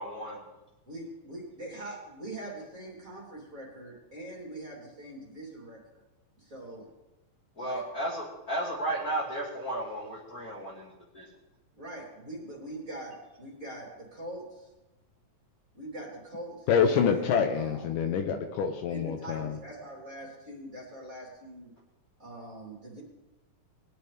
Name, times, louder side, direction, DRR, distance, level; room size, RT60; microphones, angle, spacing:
voice 1, 0.0-0.4 7.6-11.3, right 1 dB, 35° left, -4 dB, 1.8 m, -34 dB
voice 2, 0.9-5.8 6.4-6.9 7.6-7.8 11.7-14.6 15.7-17.9 18.9-21.7 22.2-23.0, right 1 dB, 25° right, -3 dB, 3.2 m, -43 dB
voice 3, 16.7-19.6, left 7 dB, 75° left, 5 dB, 2.3 m, -26 dB
20.5 x 11.0 x 3.4 m, 1.0 s
omnidirectional pair, 4.1 m